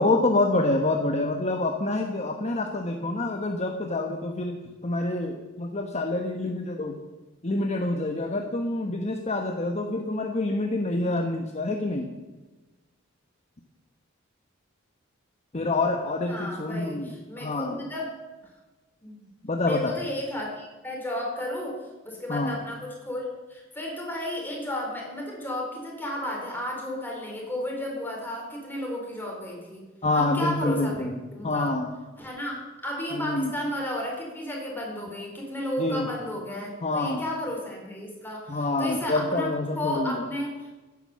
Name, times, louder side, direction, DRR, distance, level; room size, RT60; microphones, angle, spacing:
voice 1, 0.0-4.5 4.8-7.0 7.4-12.1 15.5-17.8 19.4-19.9 22.3-22.6 30.0-31.1 31.4-31.9 33.1-33.5 35.8-36.1 36.8-37.2 38.5-40.2, left 2 dB, 35° left, 4 dB, 1.1 m, -27 dB
voice 2, 16.3-18.1 18.4-18.5 19.0-19.3 19.6-29.8 30.1-30.9 31.3-31.7 32.2-39.5 39.7-40.7, left 1 dB, 10° left, -1 dB, 4.5 m, -33 dB
16.0 x 10.0 x 7.3 m, 1.2 s
head